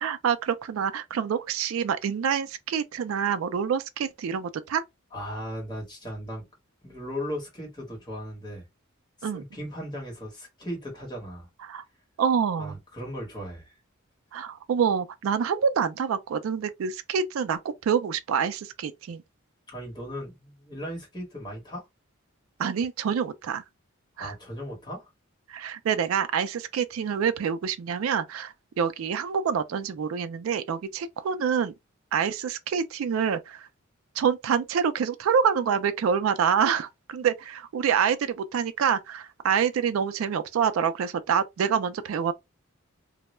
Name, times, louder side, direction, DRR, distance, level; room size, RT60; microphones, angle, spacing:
voice 1, 0.0-4.8 9.2-9.4 11.6-11.8 12.2-12.8 14.3-19.2 22.6-23.6 24.2-24.3 25.5-31.7 32.1-33.7 34.2-42.3, right 7 dB, 70° right, 0.3 m, -26 dB
voice 2, 5.1-6.4 6.8-8.7 9.2-11.5 12.6-13.8 19.7-21.9 24.2-25.1, equal, 20° left, 1.0 m, -37 dB
2.2 x 2.0 x 3.0 m
head